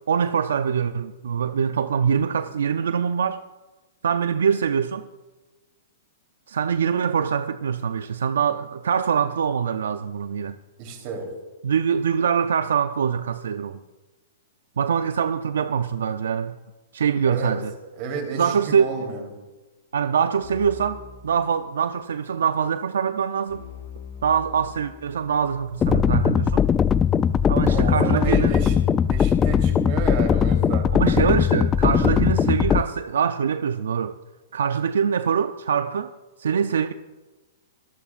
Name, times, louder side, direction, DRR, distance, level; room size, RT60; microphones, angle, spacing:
voice 1, 0.1-3.4 4.0-5.1 6.5-10.6 11.6-13.8 14.8-16.6 16.9-17.7 18.4-18.9 19.9-23.6 24.2-26.7 27.5-28.5 30.9-34.2 34.5-36.1 36.4-36.9, right 7 dB, 85° right, 0.5 m, -23 dB
voice 2, 10.8-11.3 17.2-17.5 18.0-19.3 27.6-28.8 29.1-30.9, right 4 dB, 45° right, 3.5 m, -31 dB
Keyboard (musical), 20.4-22.1 23.5-31.9, left 6 dB, 70° left, 5.5 m, -46 dB
sound 1, 25.8-32.8, left 8 dB, 15° left, 0.3 m, -20 dB
24.5 x 13.0 x 2.5 m
hypercardioid pair, 140°, 0 cm